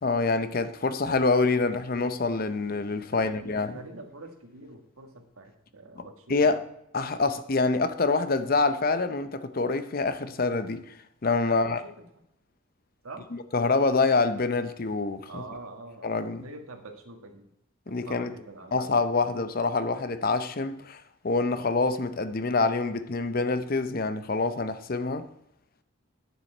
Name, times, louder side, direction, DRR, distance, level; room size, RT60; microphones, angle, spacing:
voice 1, 0.0-3.8 6.0-6.6 6.9-10.9 11.2-11.8 13.3-15.4 16.0-16.5 17.9-18.3 18.7-25.3, left 3 dB, 45° left, 0.6 m, -26 dB
voice 2, 3.0-6.4 11.5-11.9 13.0-13.3 15.3-17.5 17.9-18.9, right 2 dB, 90° right, 1.5 m, -45 dB
9.6 x 7.2 x 4.4 m
head